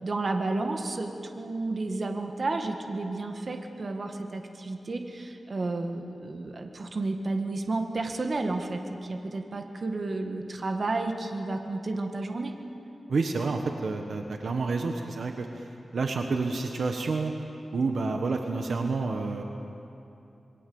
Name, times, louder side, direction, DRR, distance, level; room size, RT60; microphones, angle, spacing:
voice 1, 0.0-12.6, right 2 dB, 45° right, 4 dB, 1.8 m, -31 dB
voice 2, 13.1-17.3 17.7-19.4, right 3 dB, 65° right, 4 dB, 1.4 m, -29 dB
27.0 x 21.5 x 7.1 m, 2.8 s
wide cardioid pair, 135°, 0 cm